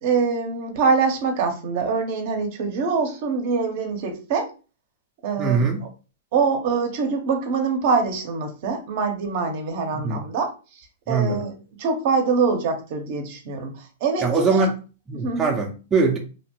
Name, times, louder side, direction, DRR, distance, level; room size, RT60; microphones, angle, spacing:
voice 1, 0.0-4.5 5.2-5.9 6.3-10.5 11.1-14.7 15.2-15.6, right 5 dB, 55° right, 0.7 m, -24 dB
voice 2, 5.4-5.8 10.0-10.2 11.1-11.5 14.2-14.7 15.1-16.2, right 4 dB, 15° right, 0.5 m, -22 dB
2.8 x 2.1 x 2.9 m
hypercardioid pair, 130°, 0 cm